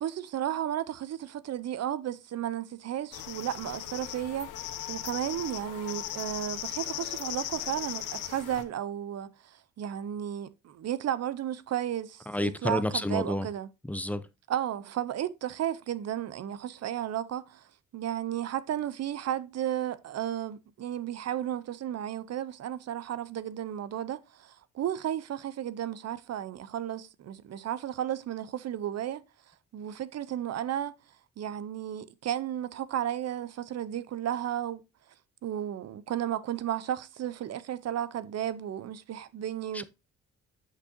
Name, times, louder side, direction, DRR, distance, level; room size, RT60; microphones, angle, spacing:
voice 1, 0.0-13.7 14.5-17.7 17.9-29.2 29.7-31.0 31.4-34.8 35.4-39.8, right 11 dB, 60° right, 0.8 m, -33 dB
sound 1, 3.1-8.6, left 12 dB, 90° left, 1.0 m, -38 dB
voice 2, 12.3-13.5 13.8-14.2 39.7-39.8, left 1 dB, 5° left, 0.7 m, -30 dB
8.3 x 6.2 x 2.8 m
cardioid pair, 90°, 30 cm